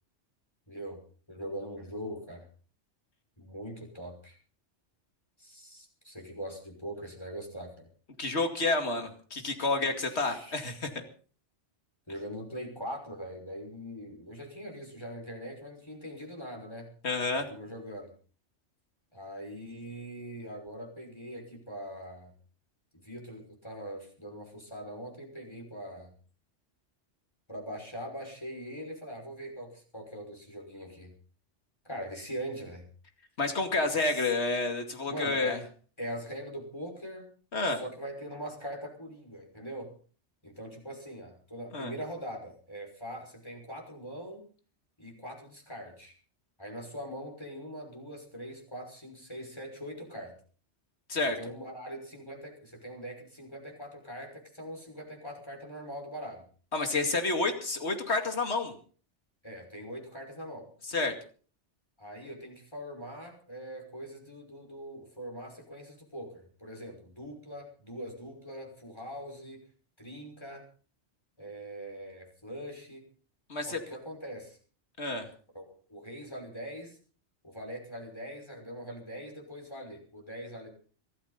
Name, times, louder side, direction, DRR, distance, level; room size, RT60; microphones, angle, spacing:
voice 1, 0.7-1.0 1.3-2.5 3.4-4.4 5.4-7.9 10.0-10.8 12.1-16.9 17.5-18.1 19.1-22.3 22.9-26.1 27.5-31.1 31.8-32.9 33.9-34.3 35.1-35.6 36.0-37.3 37.7-39.9 40.4-44.5 45.0-46.1 46.6-50.4 51.2-56.5 59.4-60.7 62.0-69.7 70.0-70.7 71.4-73.1 73.7-74.6 75.5-77.0 77.4-80.7, equal, 20° left, 1 dB, 5.8 m, -42 dB
voice 2, 8.2-11.0 17.0-17.5 33.4-35.6 37.5-37.8 41.7-41.9 51.1-51.4 56.7-58.7 60.9-61.1 73.5-73.8 75.0-75.3, left 3 dB, 65° left, 5 dB, 2.7 m, -29 dB
23.5 x 14.0 x 4.1 m, 0.41 s
omnidirectional pair, 1.2 m